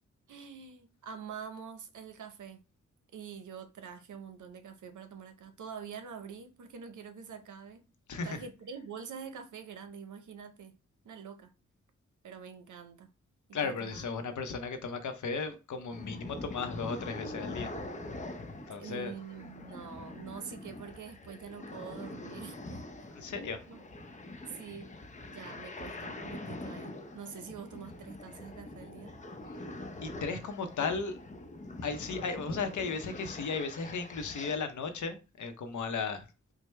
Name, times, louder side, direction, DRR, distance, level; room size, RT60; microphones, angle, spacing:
voice 1, 0.3-2.6 3.1-7.8 8.2-10.8 11.0-11.5 12.2-13.1 13.6-14.1 18.7-23.1 23.7-23.8 24.5-24.9 25.3-29.1, right 6 dB, 90° right, 0.7 m, -45 dB
voice 2, 8.1-8.4 13.5-17.7 18.7-19.1 23.1-23.6 30.0-31.2 31.8-36.3, left 4 dB, 80° left, 0.7 m, -35 dB
sound 1, 15.9-34.6, left 2 dB, 25° left, 0.6 m, -44 dB
4.7 x 2.1 x 3.2 m
wide cardioid pair, 85°, 29 cm